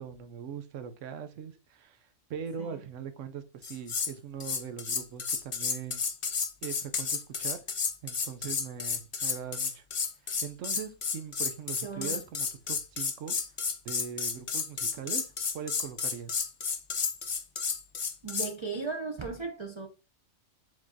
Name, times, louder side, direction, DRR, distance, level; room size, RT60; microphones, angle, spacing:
voice 1, 0.0-6.0 6.6-7.6 8.0-9.8 10.2-13.4 13.8-15.2 15.5-16.4, right 7 dB, 90° right, 1.0 m, -41 dB
sound 1, 3.6-4.1 4.4-18.5, left 5 dB, 50° left, 0.4 m, -32 dB
voice 2, 11.8-12.2 18.2-19.9, right 4 dB, 40° right, 0.4 m, -36 dB
4.9 x 3.8 x 2.6 m
omnidirectional pair, 1.3 m